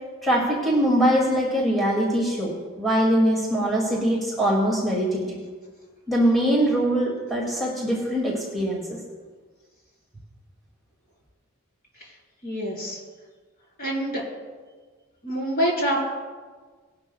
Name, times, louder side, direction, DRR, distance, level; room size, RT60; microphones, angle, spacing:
voice 1, 0.2-5.4 6.1-9.0, equal, ahead, -5 dB, 2.3 m, -22 dB
voice 2, 12.4-13.0 13.8-14.2 15.2-16.0, equal, 45° left, -4 dB, 4.3 m, -26 dB
19.5 x 11.5 x 2.3 m, 1.4 s
head